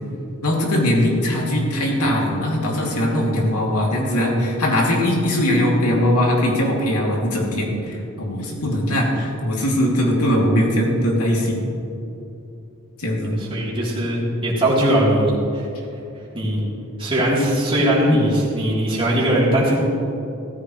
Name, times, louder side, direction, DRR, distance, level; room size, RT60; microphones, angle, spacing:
voice 1, 0.4-11.6 13.0-13.4, left 1 dB, 85° left, -2 dB, 2.7 m, -20 dB
voice 2, 13.4-15.7 16.3-16.6 17.0-19.8, right 1 dB, 25° right, -7 dB, 3.4 m, -19 dB
16.0 x 14.5 x 3.2 m, 2.9 s
head